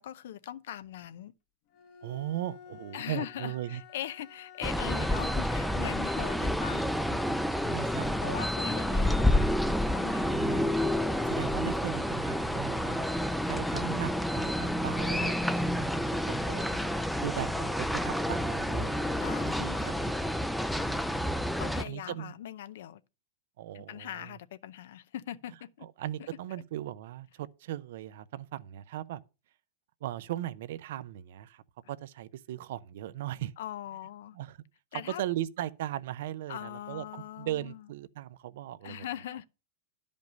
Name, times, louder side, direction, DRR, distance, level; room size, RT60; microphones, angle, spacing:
voice 1, 0.0-1.3 2.9-7.4 7.7-10.6 19.2-20.1 20.7-21.2 21.6-23.0 23.7-25.9 26.5-26.6 33.6-34.4 34.9-35.2 36.5-37.8 38.8-39.5, left 11 dB, 70° left, 0.6 m, -41 dB
Bowed string instrument, 1.7-6.6, left 7 dB, 50° left, 1.1 m, -51 dB
voice 2, 2.0-3.8 5.9-6.0 7.6-9.0 10.0-10.7 11.3-13.0 13.4-16.8 17.2-20.3 21.0-21.4 21.8-22.3 23.6-24.4 25.8-29.2 30.0-31.6 31.9-33.5 34.3-34.6 34.9-39.1, right 13 dB, 65° right, 0.5 m, -38 dB
sound 1, 4.6-21.8, left 1 dB, ahead, 0.5 m, -29 dB
10.5 x 5.2 x 5.2 m
hypercardioid pair, 135°, 0 cm